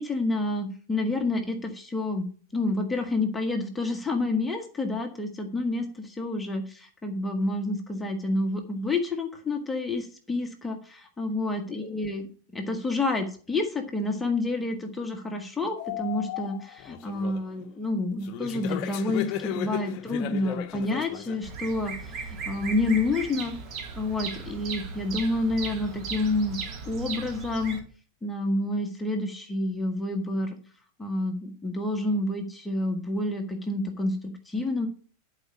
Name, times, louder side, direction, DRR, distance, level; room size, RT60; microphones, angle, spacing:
voice 1, 0.0-12.3 12.5-23.6 24.0-26.6 26.9-27.8 28.2-30.6 31.0-34.9, left 2 dB, 10° left, 4 dB, 1.4 m, -29 dB
sound 1, 15.8-17.6 18.2-21.4, left 11 dB, 40° left, 0.9 m, -35 dB
Bird vocalization bird call bird song, 21.4-27.8, right 5 dB, 35° right, 2.2 m, -37 dB
11.5 x 5.0 x 7.2 m, 0.41 s
figure-of-eight pair, 90°, 0 cm